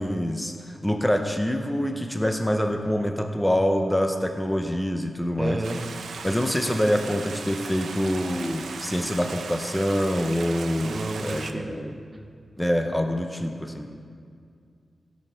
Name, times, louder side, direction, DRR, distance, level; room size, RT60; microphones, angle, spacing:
voice 1, 0.0-5.9 6.2-12.0 12.6-13.9, equal, 10° left, 5 dB, 0.7 m, -26 dB
voice 2, 5.4-5.8 10.8-11.7, right 2 dB, 25° right, 5 dB, 0.9 m, -31 dB
Stream, 5.6-11.5, right 5 dB, 90° right, 0.6 m, -38 dB
16.0 x 6.4 x 5.6 m, 2.2 s
wide cardioid pair, 125°, 0 cm